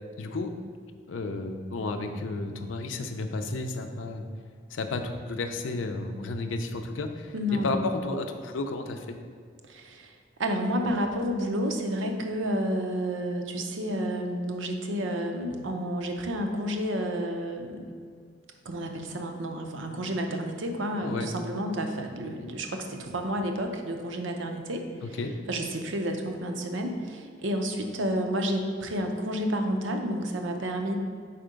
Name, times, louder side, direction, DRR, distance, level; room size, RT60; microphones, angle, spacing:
voice 1, 0.2-0.5 1.1-4.3 4.7-9.2 20.9-21.3 25.0-25.3, left 3 dB, 90° left, 6 dB, 0.5 m, -32 dB
voice 2, 7.3-7.9 9.6-10.1 10.4-17.8 18.7-24.8 25.5-31.0, equal, 85° right, 4 dB, 0.6 m, -30 dB
4.5 x 4.2 x 5.1 m, 2.1 s
head